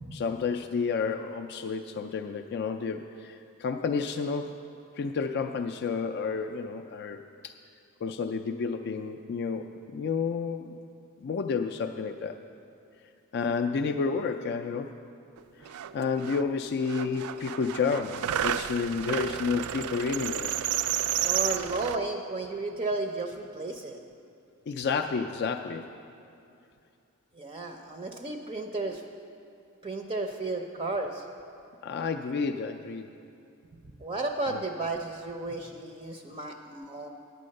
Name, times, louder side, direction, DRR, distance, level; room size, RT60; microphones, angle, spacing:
voice 1, 0.1-4.6 5.0-7.2 7.4-7.5 8.0-10.7 11.2-12.4 13.3-14.9 15.9-20.5 24.7-25.9 31.8-33.1 34.5-34.6, left 5 dB, 50° left, 6 dB, 0.4 m, -30 dB
sound 1, 15.4-15.5 15.6-16.4 16.8-22.0, right 10 dB, 80° right, 0.4 m, -31 dB
voice 2, 21.2-24.0 27.3-29.0 29.8-31.2 34.0-37.1, right 2 dB, 25° right, 3 dB, 0.5 m, -33 dB
9.2 x 8.5 x 6.4 m, 2.6 s
head